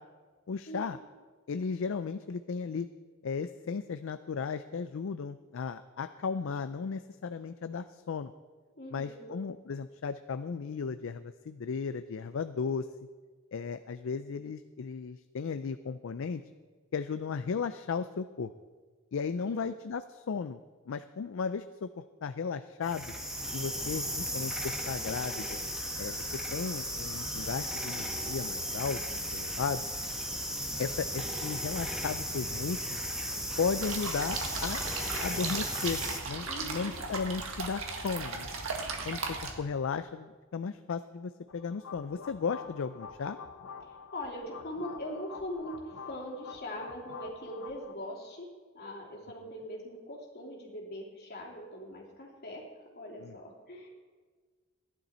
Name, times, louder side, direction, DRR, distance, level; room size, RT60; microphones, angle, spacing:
voice 1, 0.5-1.0 1.5-2.9 3.2-8.3 8.9-12.9 13.5-16.4 16.9-18.5 19.1-20.6 20.9-21.9 22.2-23.1 23.5-25.6 26.0-26.2 26.5-29.8 30.8-33.0 33.6-34.8 35.2-38.5 39.1-43.4 53.2-53.3, left 5 dB, 65° left, 10 dB, 0.4 m, -35 dB
voice 2, 8.8-9.3 19.4-19.7 36.4-36.9 43.8-48.5 48.7-53.9, equal, 50° left, -2 dB, 3.0 m, -41 dB
sound 1, 22.8-36.2, equal, 5° right, 1.4 m, -35 dB
sound 2, 33.8-39.5, right 4 dB, 75° right, 1.7 m, -36 dB
sound 3, 41.5-47.9, left 5 dB, 85° left, 0.8 m, -47 dB
15.0 x 11.0 x 4.3 m, 1.5 s
head